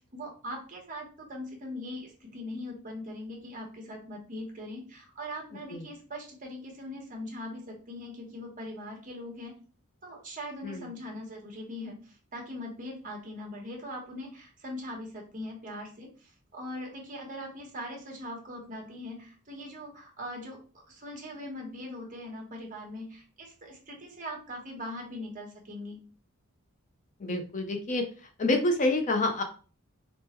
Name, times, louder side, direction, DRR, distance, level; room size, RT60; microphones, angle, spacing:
voice 1, 0.1-9.5 10.0-20.6 20.9-26.0, left 1 dB, 40° right, 1 dB, 1.1 m, -41 dB
voice 2, 27.2-28.0 28.4-29.4, left 2 dB, 35° left, 5 dB, 0.5 m, -27 dB
3.5 x 2.0 x 4.3 m, 0.37 s
head